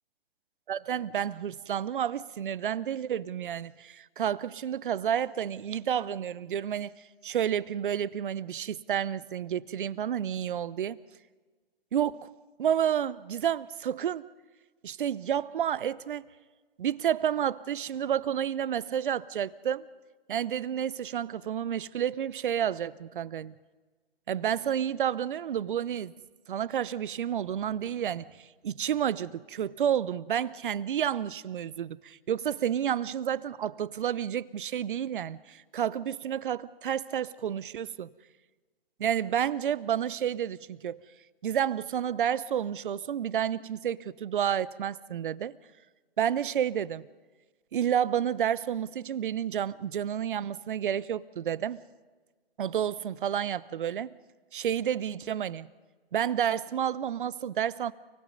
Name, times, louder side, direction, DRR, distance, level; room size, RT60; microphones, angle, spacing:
voice 1, 0.7-6.9 7.2-11.0 11.9-12.3 12.6-14.2 14.8-16.2 16.8-19.9 20.3-23.5 24.3-26.1 26.5-38.1 39.0-41.0 41.4-45.6 46.2-47.0 47.7-51.8 52.6-54.1 54.5-55.7 56.1-57.9, right 9 dB, 55° right, 0.9 m, -30 dB
30.0 x 19.0 x 5.3 m
figure-of-eight pair, 130°, 30 cm